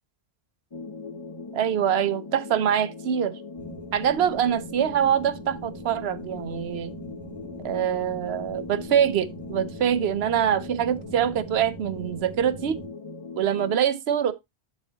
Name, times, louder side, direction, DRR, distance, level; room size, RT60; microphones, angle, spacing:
sound 1, 0.7-13.8, left 3 dB, 30° left, 0.8 m, -40 dB
voice 1, 1.5-3.4 3.9-6.9 7.6-12.8 13.4-14.3, right 9 dB, 75° right, 0.9 m, -24 dB
sound 2, 3.6-12.9, right 3 dB, 35° right, 1.8 m, -44 dB
10.5 x 4.1 x 2.8 m
omnidirectional pair, 1.1 m